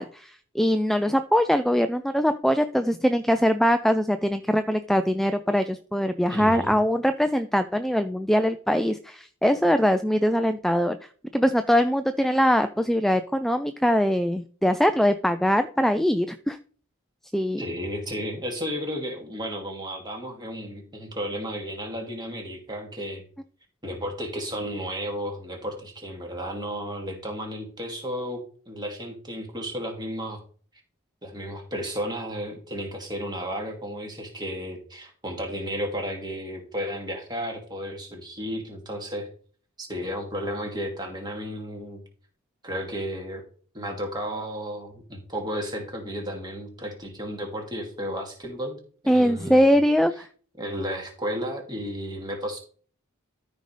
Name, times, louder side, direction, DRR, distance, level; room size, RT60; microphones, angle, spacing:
voice 1, 0.0-11.0 11.3-16.6 17.3-17.6 49.1-50.3, equal, ahead, 9 dB, 0.3 m, -22 dB
voice 2, 6.3-6.8 17.6-23.2 23.8-28.4 28.7-30.4 31.2-39.3 39.8-42.0 42.6-43.4 43.7-48.8 49.0-49.8 50.6-52.6, equal, 20° right, 1 dB, 2.3 m, -33 dB
13.0 x 5.2 x 3.3 m, 0.44 s
head